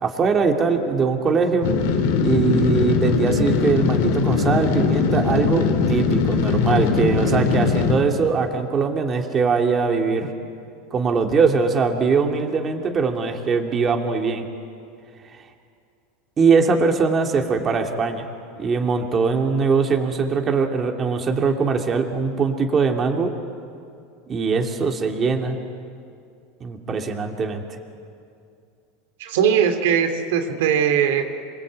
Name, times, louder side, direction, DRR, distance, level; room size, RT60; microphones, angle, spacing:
voice 1, 0.0-1.7 2.2-10.3 10.9-14.4 16.4-18.3 18.6-23.3 24.3-25.6 26.6-27.6, right 5 dB, 25° right, 3 dB, 2.3 m, -21 dB
sound 1, 1.6-8.0, left 5 dB, 75° left, 2.7 m, -20 dB
voice 2, 29.2-31.2, right 8 dB, 80° right, 6 dB, 2.7 m, -20 dB
28.0 x 21.5 x 8.8 m, 2.4 s
supercardioid pair, 135°, 0 cm